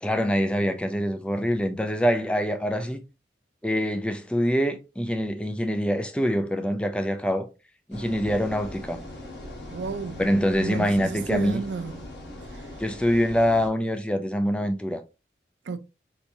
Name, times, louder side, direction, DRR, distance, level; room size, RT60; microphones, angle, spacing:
voice 1, 0.0-3.0 3.6-7.5 7.9-9.0 10.2-11.6 12.8-15.0, equal, 5° left, 0.4 m, -25 dB
sound 1, 7.9-13.7, left 1 dB, 75° left, 1.5 m, -40 dB
voice 2, 9.7-10.2 10.6-12.1 15.7-15.8, right 4 dB, 90° right, 0.4 m, -32 dB
4.5 x 2.9 x 2.6 m
head